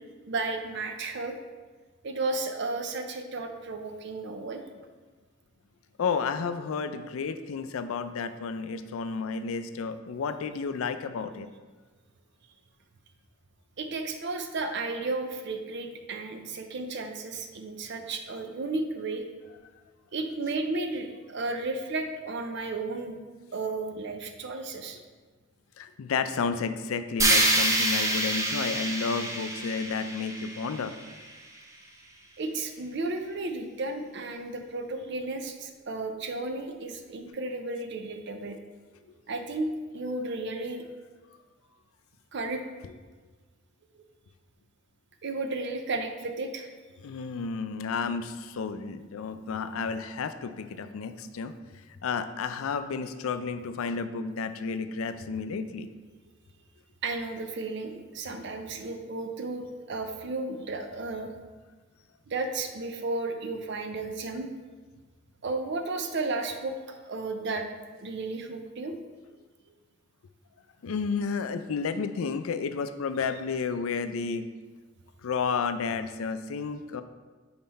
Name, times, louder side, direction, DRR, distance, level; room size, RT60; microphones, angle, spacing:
voice 1, 0.3-1.4 2.0-4.6 13.8-19.2 20.1-23.2 23.5-25.0 32.4-38.6 39.3-39.7 39.9-40.8 42.3-42.6 45.2-46.7 57.0-61.3 62.3-64.5 65.4-67.7 68.0-69.0, right 3 dB, 55° right, 6 dB, 0.6 m, -33 dB
voice 2, 6.0-11.5 25.8-30.9 42.8-42.9 47.0-51.5 52.0-55.9 70.8-74.5 75.2-77.0, left 5 dB, 90° left, 10 dB, 0.4 m, -31 dB
sound 1, 27.2-31.3, right 1 dB, 15° right, 0.6 m, -27 dB
5.6 x 4.3 x 4.1 m, 1.4 s
head